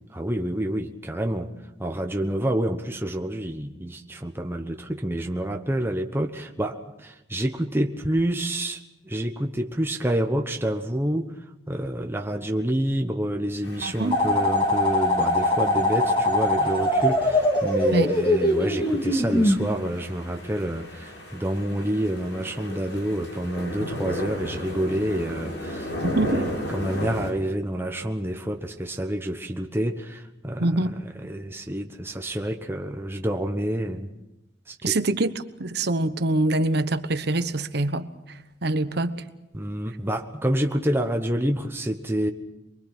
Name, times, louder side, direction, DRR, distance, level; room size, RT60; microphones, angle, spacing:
voice 1, 0.1-1.5 1.8-11.3 11.7-25.9 26.3-30.7 31.2-34.1 34.7-35.0 39.5-42.3, right 1 dB, 15° right, 1.1 m, -28 dB
sound 1, 13.6-27.3, left 1 dB, 85° left, 7.1 m, -36 dB
voice 2, 13.8-14.2 17.9-18.1 26.0-26.4 30.6-30.9 34.8-39.2, right 2 dB, 65° right, 1.1 m, -25 dB
sound 2, 14.1-19.6, left 1 dB, 30° left, 2.2 m, -22 dB
24.0 x 23.5 x 6.1 m
head